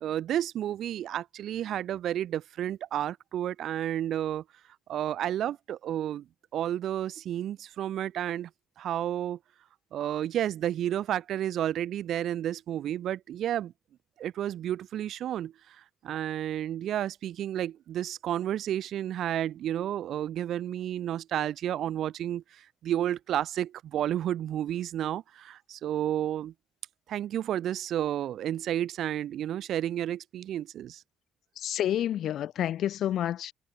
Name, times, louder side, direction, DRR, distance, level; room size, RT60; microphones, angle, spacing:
voice 1, 0.0-4.4 4.9-6.3 6.5-8.5 8.8-9.4 9.9-13.7 14.2-15.8 16.0-26.5 27.1-31.0, right 11 dB, 75° right, 0.5 m, -31 dB
voice 2, 31.6-33.5, left 11 dB, 75° left, 0.4 m, -29 dB
cardioid pair, 90°, 0 cm